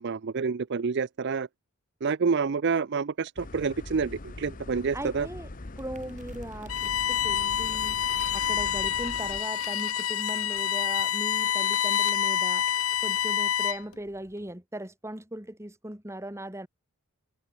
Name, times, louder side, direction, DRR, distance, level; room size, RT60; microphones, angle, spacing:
voice 1, 0.0-1.5 2.0-5.3, right 5 dB, 55° right, 0.5 m, -28 dB
sound 1, 3.4-9.4, left 2 dB, 40° left, 1.0 m, -42 dB
voice 2, 4.9-5.5 5.8-8.0 8.3-12.6 13.0-16.7, right 1 dB, 15° right, 2.5 m, -39 dB
sound 2, 5.6-13.0, right 6 dB, 35° right, 3.3 m, -55 dB
Bowed string instrument, 6.7-13.9, left 9 dB, 75° left, 1.1 m, -27 dB
head